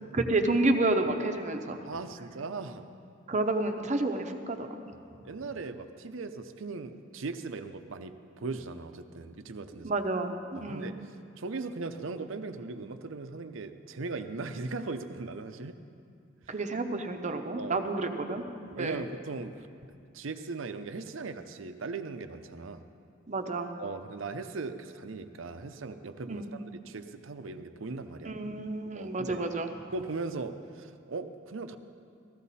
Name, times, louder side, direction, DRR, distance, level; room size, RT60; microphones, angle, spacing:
voice 1, 0.1-1.8 3.3-4.7 9.8-10.9 16.5-19.0 23.3-23.7 26.3-26.5 28.2-29.7, right 2 dB, 35° right, 6 dB, 0.8 m, -30 dB
voice 2, 1.8-2.9 5.2-9.9 10.5-11.0 11.4-15.8 17.6-17.8 18.7-19.6 20.1-22.8 23.8-28.3 28.9-29.4 29.9-31.8, right 3 dB, 70° right, 9 dB, 0.6 m, -38 dB
15.0 x 14.5 x 4.2 m, 2.4 s
head